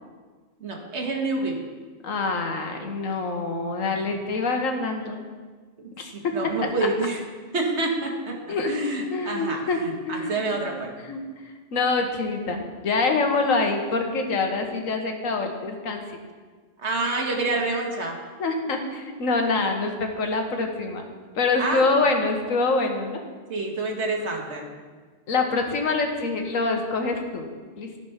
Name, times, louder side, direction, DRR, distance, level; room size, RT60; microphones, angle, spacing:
voice 1, 0.6-1.5 6.1-7.2 7.5-8.3 8.7-10.9 16.8-18.2 21.6-21.9 23.5-24.7, right 2 dB, 60° right, 0 dB, 1.8 m, -27 dB
voice 2, 2.0-5.2 6.0-6.3 8.5-8.7 9.1-9.8 10.1-10.7 11.1-16.2 18.4-21.0 21.3-23.2 25.3-27.5 27.8-27.9, left 3 dB, 90° left, 4 dB, 1.6 m, -25 dB
13.5 x 5.1 x 5.7 m, 1.5 s
omnidirectional pair, 1.3 m